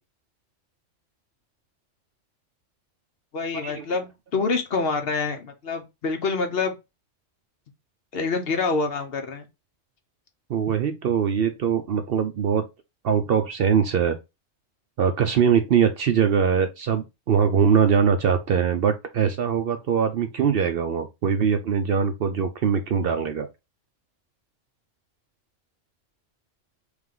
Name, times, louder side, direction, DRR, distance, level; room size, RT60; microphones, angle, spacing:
voice 1, 3.3-4.1 4.3-6.7 8.1-9.5, left 4 dB, 55° left, 1.0 m, -26 dB
voice 2, 10.5-12.6 13.0-14.2 15.0-23.5, right 7 dB, 60° right, 0.7 m, -22 dB
3.4 x 3.3 x 3.7 m
omnidirectional pair, 1.3 m